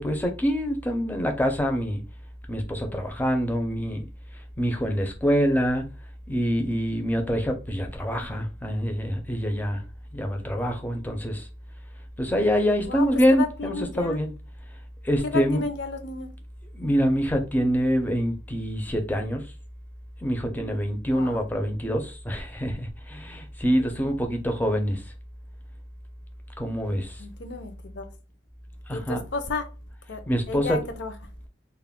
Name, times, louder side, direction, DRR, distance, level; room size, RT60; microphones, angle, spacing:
voice 1, 0.0-2.0 2.5-4.1 4.6-5.8 6.3-9.8 10.1-11.5 12.2-14.3 15.0-15.6 16.7-19.5 20.2-25.0 26.6-27.2 28.9-29.2 30.3-30.8, equal, 10° left, 0.4 m, -25 dB
voice 2, 12.9-14.2 15.2-16.3 21.1-21.4 27.2-28.1 28.9-29.7 30.1-30.2 30.5-31.1, left 3 dB, 70° left, 0.5 m, -32 dB
2.3 x 2.1 x 3.4 m
head